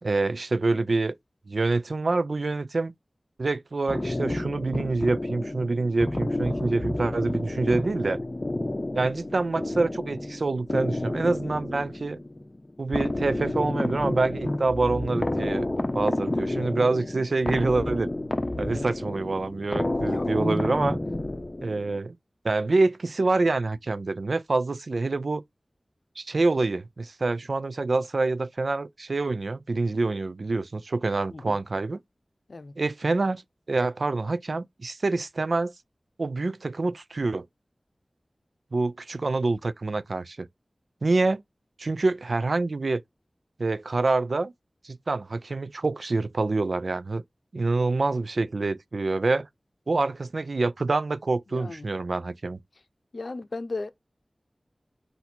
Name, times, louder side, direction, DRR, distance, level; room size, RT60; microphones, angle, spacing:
voice 1, 0.0-1.1 1.5-2.9 3.4-8.2 8.9-12.2 12.8-15.7 15.9-18.1 18.6-21.0 21.6-22.1 22.4-25.4 26.2-32.0 32.8-33.4 33.7-35.7 36.2-37.5 38.7-40.5 41.0-41.4 41.8-43.0 43.6-44.5 44.8-47.2 47.5-49.5 49.9-52.6, right 3 dB, 75° right, 0.3 m, -26 dB
sound 1, 3.9-22.0, left 1 dB, 35° left, 0.7 m, -30 dB
voice 2, 20.1-20.5 31.3-31.6 32.5-32.7 51.5-51.9 53.1-53.9, left 3 dB, 70° left, 0.6 m, -36 dB
4.2 x 2.6 x 4.2 m
wide cardioid pair, 40°, 0 cm